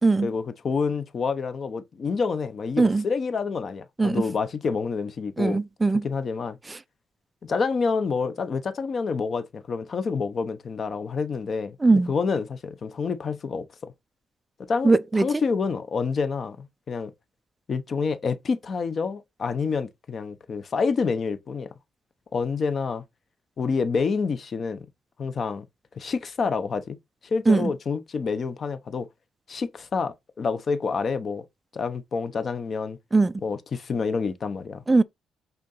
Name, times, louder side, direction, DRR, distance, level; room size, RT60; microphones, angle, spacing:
voice 1, 0.2-5.6 6.0-6.6 7.5-13.9 14.7-17.1 17.7-21.7 22.3-23.0 23.6-24.9 25.2-25.7 25.9-27.0 27.2-29.1 29.5-31.4 31.7-33.0 33.4-34.8, left 5 dB, 35° left, 0.9 m, -28 dB
voice 2, 5.4-6.0 11.8-12.1 14.8-15.3 27.5-27.7 33.1-33.3 34.9-35.0, right 3 dB, 15° right, 0.4 m, -19 dB
8.1 x 3.9 x 5.4 m
cardioid pair, 165°, 0 cm